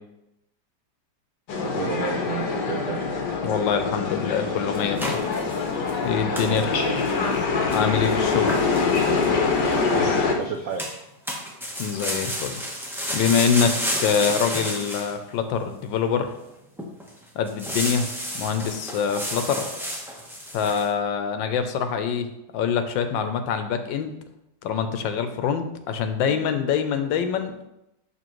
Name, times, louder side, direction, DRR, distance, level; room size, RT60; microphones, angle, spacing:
sound 1, 1.5-10.4, left 4 dB, 70° left, 1.5 m, -24 dB
voice 1, 1.6-3.1 6.4-7.0 9.9-11.0, right 6 dB, 80° right, 4 dB, 0.7 m, -32 dB
voice 2, 3.4-5.2 6.0-6.7 7.7-8.6 11.8-12.6 13.1-16.3 17.3-18.1 18.3-19.7 20.5-24.1 24.6-27.5, left 7 dB, 85° left, 8 dB, 1.4 m, -25 dB
sound 2, 4.7-6.0 6.4-6.6 7.0-7.4 7.7-9.8 10.8-11.0 11.3-15.1 15.7-15.8 16.4-16.5 16.8-17.1 17.5-20.9, equal, 5° right, 0.4 m, -31 dB
6.9 x 6.3 x 3.1 m, 0.88 s
omnidirectional pair, 2.0 m